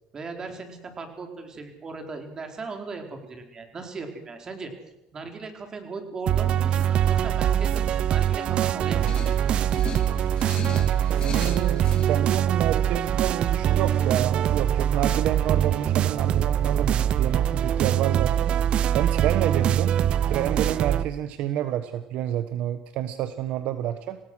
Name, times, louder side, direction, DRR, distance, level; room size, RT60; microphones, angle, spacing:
voice 1, 0.1-4.7 5.1-9.4, right 4 dB, 25° right, 4 dB, 4.7 m, -38 dB
sound 1, 6.3-21.0, right 10 dB, 45° right, 0.9 m, -23 dB
sound 2, 9.0-12.1, left 6 dB, 35° left, 3.1 m, -38 dB
voice 2, 11.1-18.6 18.9-19.9 20.3-24.2, right 12 dB, 60° right, 10 dB, 1.3 m, -29 dB
26.0 x 18.5 x 6.5 m, 0.90 s
cardioid pair, 125°, 2 cm